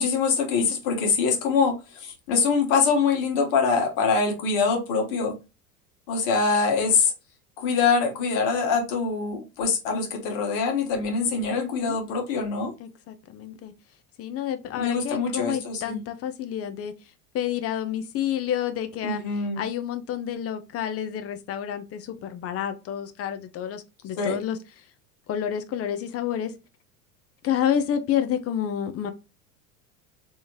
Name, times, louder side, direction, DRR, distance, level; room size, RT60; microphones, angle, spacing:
voice 1, 0.0-5.4 6.1-7.1 7.6-12.7 14.7-16.0 19.0-19.7 24.1-24.4, left 5 dB, 55° left, 1.4 m, -24 dB
voice 2, 11.5-12.0 12.8-13.7 14.2-16.9 17.3-19.2 19.6-24.6 25.3-26.5 27.4-29.1, left 9 dB, 30° left, 0.6 m, -29 dB
3.4 x 2.7 x 3.0 m
hypercardioid pair, 85°, 45 cm